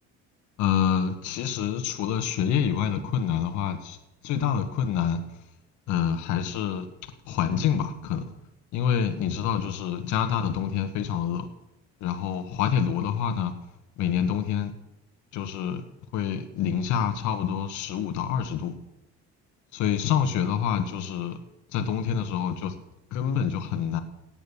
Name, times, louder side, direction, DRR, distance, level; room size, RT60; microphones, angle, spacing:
voice 1, 0.6-4.0 4.2-5.2 5.9-6.9 7.2-8.2 8.7-11.5 12.0-13.5 14.0-14.7 15.3-15.8 16.1-18.7 19.7-21.4 21.7-22.7 23.1-24.0, left 8 dB, 75° left, 1.5 m, -27 dB
17.5 x 9.0 x 7.1 m
cardioid pair, 125°, 30 cm